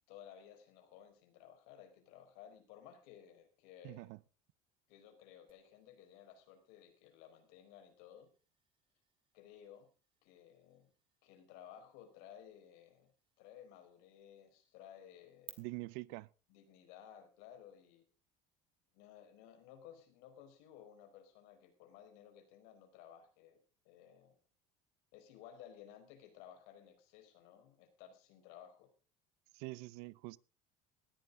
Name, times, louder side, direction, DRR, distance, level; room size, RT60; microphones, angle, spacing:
voice 1, 0.1-4.1 4.9-8.3 9.3-9.9 10.2-10.9 11.2-13.1 13.4-15.6 16.5-18.0 18.9-23.6 23.8-24.4 25.1-28.9, left 9 dB, 80° left, 4.8 m, -57 dB
voice 2, 3.8-4.2 15.6-16.3 29.5-30.4, right 22 dB, 80° right, 0.7 m, -45 dB
sound 1, 5.5-15.5, right 8 dB, 30° right, 3.0 m, -64 dB
19.0 x 14.0 x 3.7 m
cardioid pair, 125°, 16 cm